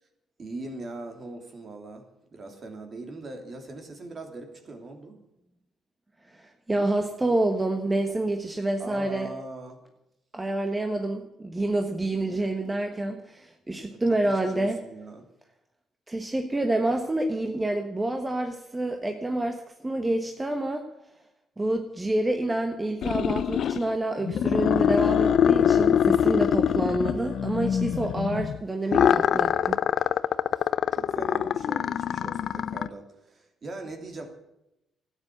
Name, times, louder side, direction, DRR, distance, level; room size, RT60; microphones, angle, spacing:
voice 1, 0.4-2.0 2.3-5.2 8.8-9.8 13.9-15.2 25.4-25.9 30.6-34.3, right 2 dB, 45° right, 4 dB, 3.0 m, -41 dB
voice 2, 6.3-9.3 10.3-14.8 16.1-20.9 21.6-29.8, right 1 dB, 15° right, 4 dB, 1.4 m, -28 dB
sound 1, 23.0-23.9 24.2-28.6 28.9-32.9, left 9 dB, 65° left, 0.5 m, -24 dB
13.0 x 9.4 x 7.8 m, 0.88 s
cardioid pair, 90°, 0 cm